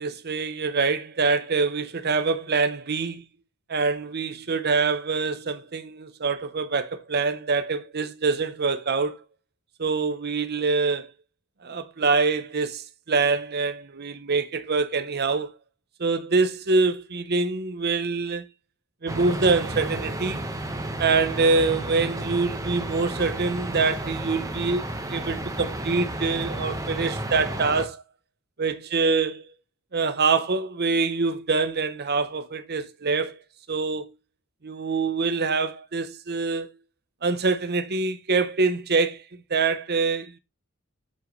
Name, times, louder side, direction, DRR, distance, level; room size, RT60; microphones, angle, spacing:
voice 1, 0.0-3.2 3.7-9.2 9.8-11.1 11.6-15.5 16.0-18.5 19.0-20.4 21.0-28.0 28.6-29.4 29.9-33.4 33.7-34.1 34.6-36.7 37.2-39.2 39.5-40.4, right 4 dB, 50° right, 0.9 m, -25 dB
sound 1, 19.1-27.9, right 1 dB, 15° right, 1.3 m, -32 dB
7.8 x 7.7 x 3.2 m
head